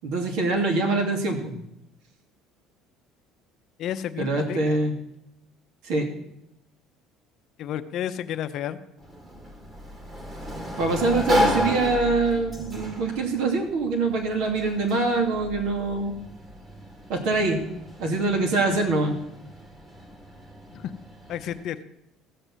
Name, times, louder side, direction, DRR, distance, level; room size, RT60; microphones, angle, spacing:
voice 1, 0.0-1.5 4.2-4.9 5.8-6.1 10.8-16.1 17.1-17.6 18.0-19.2, right 3 dB, 75° right, 3 dB, 2.7 m, -24 dB
voice 2, 3.8-4.8 7.6-8.8 20.7-20.9 21.3-21.8, left 10 dB, 55° left, 10 dB, 0.8 m, -31 dB
Sliding door, 9.0-21.6, equal, 25° right, 2.1 m, -32 dB
14.5 x 6.7 x 7.5 m, 0.82 s
cardioid pair, 130°, 0 cm